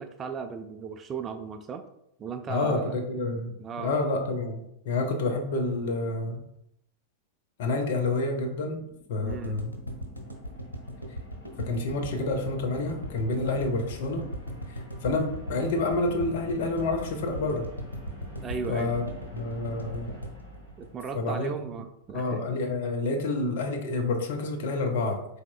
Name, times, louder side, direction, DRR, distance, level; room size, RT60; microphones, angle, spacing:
voice 1, 0.0-1.8 2.2-3.0 3.6-4.0 9.2-9.6 18.4-18.9 20.8-22.4, right 6 dB, 25° right, 7 dB, 0.3 m, -36 dB
voice 2, 2.5-6.4 7.6-8.8 9.1-9.7 11.6-14.2 15.0-17.7 18.7-19.0 19.3-20.2 21.1-21.5 22.1-25.2, left 2 dB, 55° left, 3 dB, 0.7 m, -28 dB
sound 1, 8.7-21.5, left 1 dB, 75° left, 1.3 m, -48 dB
sound 2, 9.3-21.4 21.7-21.8 22.0-22.1, equal, 90° right, 0.7 m, -38 dB
4.1 x 3.4 x 2.2 m, 0.78 s
figure-of-eight pair, 90°, 0 cm